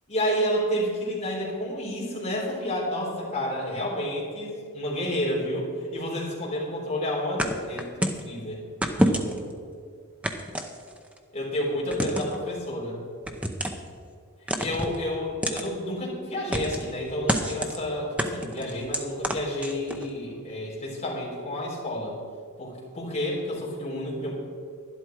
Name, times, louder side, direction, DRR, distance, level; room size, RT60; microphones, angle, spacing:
voice 1, 0.1-8.6 9.0-9.4 11.3-13.0 14.6-22.2 22.6-24.3, equal, 30° left, -5 dB, 3.7 m, -30 dB
sound 1, 7.4-8.3 8.8-9.5 10.2-11.2 11.9-12.4 13.3-13.9 14.5-15.0 15.4-15.7 16.5-16.9 17.3-17.8 18.2-20.1, equal, 5° right, 0.7 m, -27 dB
11.5 x 11.5 x 4.7 m, 2.2 s
head